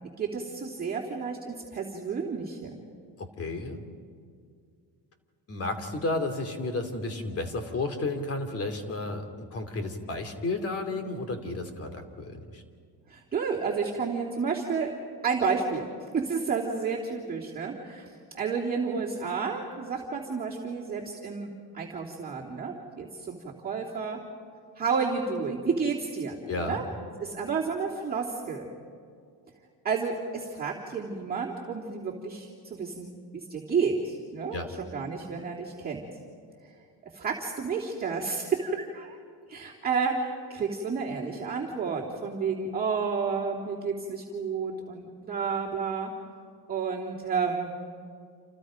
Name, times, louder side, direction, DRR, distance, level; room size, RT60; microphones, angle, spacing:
voice 1, 0.2-2.7 13.1-14.9 15.2-15.8 16.1-24.2 24.8-26.8 27.2-28.7 29.8-36.1 37.1-39.2 39.5-46.1 46.7-47.7, right 5 dB, 20° right, -5 dB, 3.1 m, -31 dB
voice 2, 3.2-3.8 5.5-12.6 26.5-26.8 34.5-34.7, left 2 dB, 35° left, 7 dB, 2.9 m, -32 dB
29.0 x 28.5 x 5.2 m, 2.2 s
cardioid pair, 145°, 40 cm